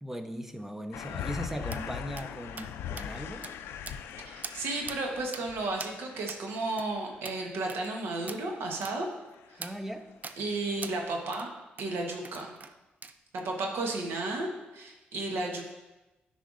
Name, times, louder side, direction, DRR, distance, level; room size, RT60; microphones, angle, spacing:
voice 1, 0.0-3.5 9.6-10.1, equal, 10° right, 7 dB, 0.7 m, -39 dB
sound 1, 0.9-7.3 9.4-9.9 10.3-10.8 11.1-11.2, left 8 dB, 85° left, 0.3 m, -41 dB
sound 2, 1.7-1.8 2.2-2.3 2.6-2.7 3.0-3.1 3.4-3.6 3.9-4.1 4.4-4.6 4.9-5.0 5.3-5.5 5.8-5.9 6.3-6.4 6.8-6.9 7.2-7.4 7.7-7.9 8.3-8.4 8.8-9.0 9.6-9.8 10.2-10.4 10.8-11.0 11.3-11.5 11.8-11.9 12.2-12.7 13.0-13.5, right 5 dB, 45° right, 0.4 m, -42 dB
voice 2, 4.2-9.1 9.5-9.6 10.4-11.5 11.8-12.5 13.3-14.5 14.7-15.6, right 2 dB, 80° right, 2 dB, 1.1 m, -33 dB
9.9 x 5.5 x 2.5 m, 1.0 s
cardioid pair, 65°, 4 cm